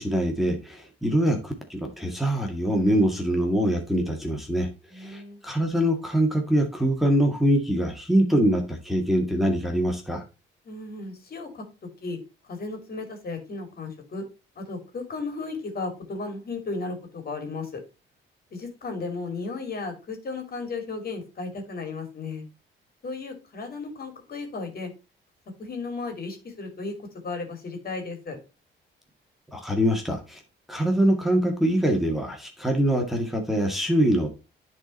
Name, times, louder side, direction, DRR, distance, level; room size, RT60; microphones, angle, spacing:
voice 1, 0.0-4.7 4.9-10.2 29.5-30.4 30.7-34.3, equal, ahead, 2 dB, 1.9 m, -24 dB
voice 2, 4.9-5.4 10.6-11.6 12.0-12.2 12.5-14.2 14.5-17.8 18.5-22.4 23.0-24.9 25.6-27.0 27.2-28.4, left 3 dB, 50° left, 5 dB, 2.9 m, -34 dB
9.9 x 4.4 x 4.3 m, 0.29 s
cardioid pair, 90°, 20 cm